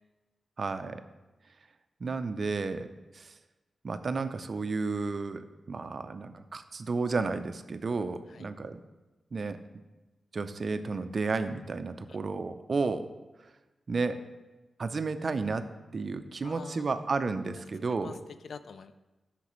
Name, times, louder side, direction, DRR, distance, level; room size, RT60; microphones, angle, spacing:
voice 1, 0.6-1.0 2.0-2.9 3.1-3.3 3.8-8.8 9.3-9.6 10.3-13.1 13.9-14.2 14.8-15.6 15.9-18.1, right 4 dB, 45° right, 10 dB, 0.5 m, -32 dB
voice 2, 16.4-16.8 18.0-18.9, left 6 dB, 70° left, 12 dB, 0.3 m, -46 dB
12.0 x 5.8 x 3.1 m, 1.1 s
wide cardioid pair, 125°, 0 cm